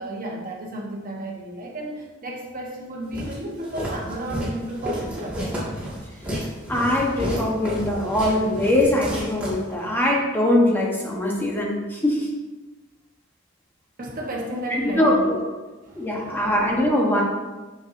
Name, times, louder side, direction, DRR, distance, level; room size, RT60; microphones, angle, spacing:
voice 1, 0.0-5.8 14.0-15.5 15.8-16.4, right 1 dB, 45° right, -1 dB, 1.3 m, -33 dB
Walk footsteps, 3.1-10.0, equal, 5° right, 2.1 m, -31 dB
voice 2, 6.7-12.3 14.7-15.4 15.9-17.2, left 1 dB, 10° left, -2 dB, 1.2 m, -22 dB
6.9 x 6.4 x 2.7 m, 1.2 s
head